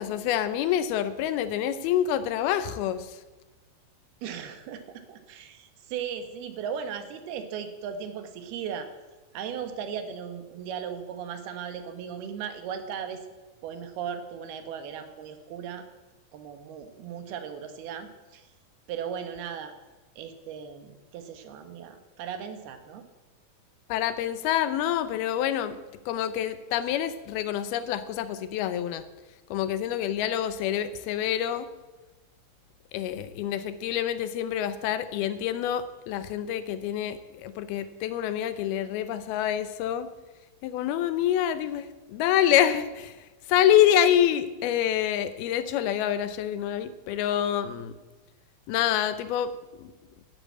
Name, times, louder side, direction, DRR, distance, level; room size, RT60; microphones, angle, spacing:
voice 1, 0.0-3.2 23.9-29.1 29.5-31.7 32.9-40.1 40.6-47.9 48.7-49.5 49.8-49.9, left 10 dB, 85° left, 12 dB, 2.8 m, -27 dB
voice 2, 4.2-8.9 9.3-13.2 13.6-15.8 16.3-18.5 18.9-19.7 20.2-23.0, right 7 dB, 90° right, 8 dB, 3.3 m, -37 dB
11.5 x 11.0 x 8.7 m, 1.2 s
omnidirectional pair, 4.3 m